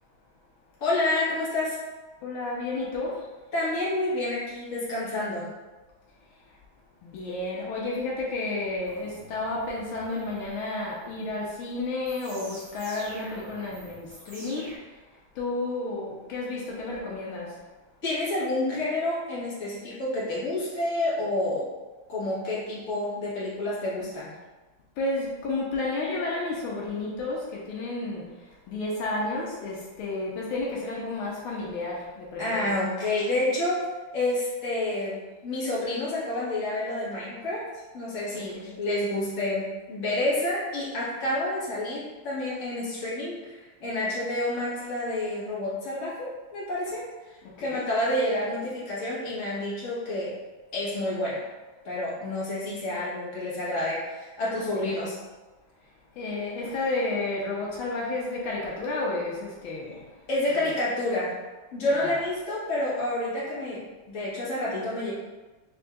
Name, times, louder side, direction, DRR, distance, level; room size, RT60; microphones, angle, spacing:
voice 1, 0.8-1.8 3.5-5.5 18.0-21.7 22.1-24.3 32.4-33.8 34.1-37.6 37.9-47.0 47.6-50.3 50.7-51.4 51.8-55.2 60.3-61.4 61.7-65.1, left 1 dB, 40° left, -8 dB, 1.6 m, -29 dB
voice 2, 2.2-3.2 7.0-14.7 15.4-17.6 25.0-28.3 28.7-32.7 38.5-38.7 47.6-47.8 54.7-54.8 56.2-60.0 60.5-60.7 61.8-62.2, left 2 dB, 80° left, -4 dB, 1.6 m, -31 dB
sound 1, 8.6-14.8, right 1 dB, 70° right, 1.8 m, -48 dB
5.3 x 3.5 x 2.3 m, 1.2 s
omnidirectional pair, 2.2 m